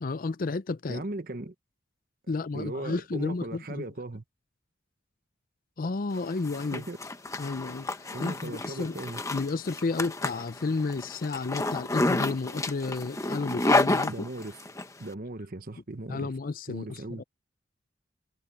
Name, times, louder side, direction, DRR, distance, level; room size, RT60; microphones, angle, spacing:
voice 1, 0.0-1.0 2.3-3.8 5.8-6.8 7.4-7.9 8.2-9.0 9.3-14.1 16.1-17.2, left 3 dB, 50° left, 0.5 m, -32 dB
voice 2, 0.9-1.5 2.5-4.2 6.7-7.0 8.1-9.2 14.1-14.6 15.0-16.3 16.7-17.2, right 2 dB, 50° right, 1.1 m, -37 dB
Zipper (clothing), 6.2-14.9, left 2 dB, 15° left, 1.1 m, -30 dB
head